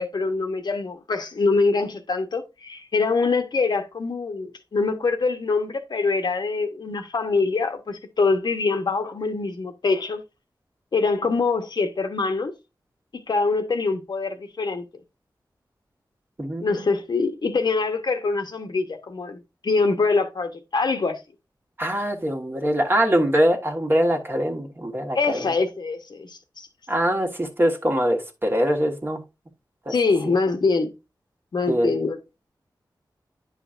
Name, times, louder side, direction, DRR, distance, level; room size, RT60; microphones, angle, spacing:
voice 1, 0.0-10.2 10.9-12.5 13.1-14.8 16.6-21.2 25.1-26.7 29.9-30.9 31.5-32.2, left 4 dB, 65° left, 1.1 m, -24 dB
voice 2, 16.4-16.9 21.8-25.5 26.9-29.2 29.8-29.9 30.2-30.3 31.7-32.1, equal, 30° right, 1.4 m, -23 dB
9.9 x 5.1 x 2.5 m
wide cardioid pair, 100°, 8 cm